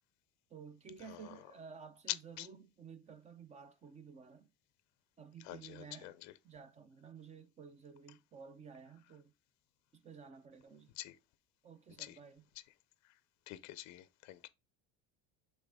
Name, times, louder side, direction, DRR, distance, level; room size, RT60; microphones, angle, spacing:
voice 1, 0.5-4.5 5.2-6.2 6.4-9.3 9.9-10.9 11.6-12.5, right 6 dB, 20° right, 0.5 m, -53 dB
voice 2, 2.1-2.5 5.4-6.3 11.0-11.2 12.0-12.2 13.5-14.5, left 17 dB, 50° left, 0.6 m, -45 dB
7.4 x 3.6 x 3.5 m
cardioid pair, 160°, 37 cm